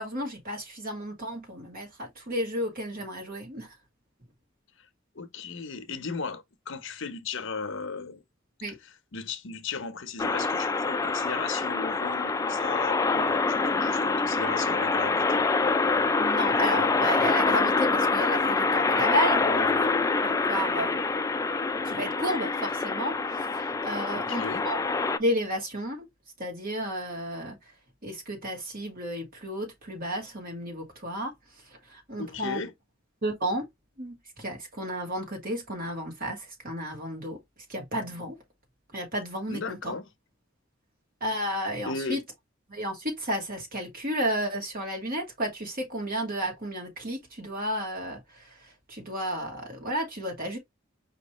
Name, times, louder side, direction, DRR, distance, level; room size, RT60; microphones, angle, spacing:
voice 1, 0.0-3.7 8.6-8.8 16.2-19.4 20.2-21.0 21.9-24.8 25.2-26.0 26.4-27.6 28.0-31.3 31.9-32.6 33.2-33.7 34.0-37.4 37.7-38.4 38.9-39.9 41.2-42.2 42.7-48.2 48.9-50.6, equal, 45° right, 2.1 m, -32 dB
voice 2, 5.1-8.2 8.7-15.4 19.4-19.7 24.1-24.7 32.1-32.7 39.5-40.1 41.8-42.2, left 4 dB, 70° left, 0.9 m, -36 dB
sound 1, 10.2-25.2, left 3 dB, 15° left, 0.3 m, -26 dB
5.0 x 3.2 x 3.0 m
head